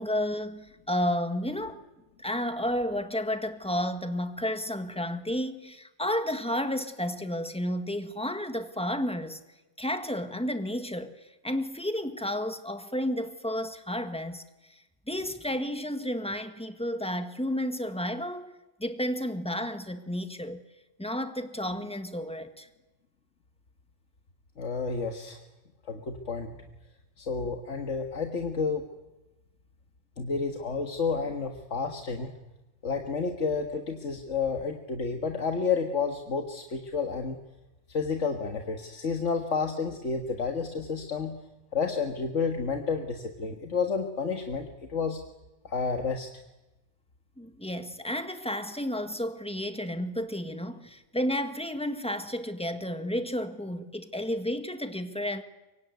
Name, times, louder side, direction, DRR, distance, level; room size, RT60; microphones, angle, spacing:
voice 1, 0.0-1.8 2.2-9.4 9.8-14.4 14.7-14.8 15.1-18.5 18.8-20.6 21.0-22.7 47.4-55.4, left 1 dB, 5° left, 1.7 m, -32 dB
voice 2, 24.6-25.4 25.9-26.5 27.2-28.8 30.2-32.3 32.8-37.4 37.9-41.3 41.7-45.2 45.6-46.3, left 5 dB, 85° left, 2.0 m, -30 dB
24.0 x 23.5 x 9.4 m
omnidirectional pair, 1.2 m